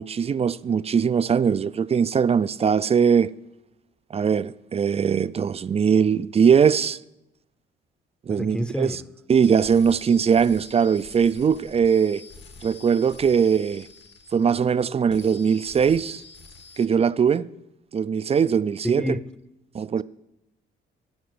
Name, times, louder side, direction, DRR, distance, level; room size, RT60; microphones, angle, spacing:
voice 1, 0.0-3.3 4.1-7.0 8.3-9.0 9.3-12.2 12.6-13.9 14.3-16.2 16.8-17.5 17.9-19.2 19.7-20.0, right 7 dB, 30° right, 0.4 m, -21 dB
voice 2, 8.3-9.0 18.8-19.2, equal, 5° left, 0.7 m, -28 dB
sound 1, 9.4-14.8 15.1-16.9, left 4 dB, 65° left, 2.0 m, -47 dB
14.5 x 5.9 x 9.5 m
cardioid pair, 90°, 20 cm